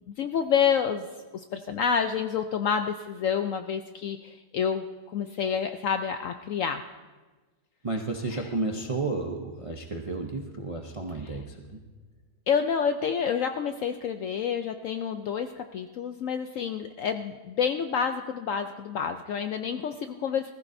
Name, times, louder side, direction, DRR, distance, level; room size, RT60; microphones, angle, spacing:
voice 1, 0.2-1.1 1.3-6.8 8.3-8.4 12.5-20.5, left 7 dB, 70° left, 7 dB, 0.7 m, -28 dB
voice 2, 7.8-11.8, right 3 dB, 40° right, 2 dB, 0.4 m, -32 dB
19.5 x 15.0 x 2.6 m, 1.3 s
omnidirectional pair, 1.8 m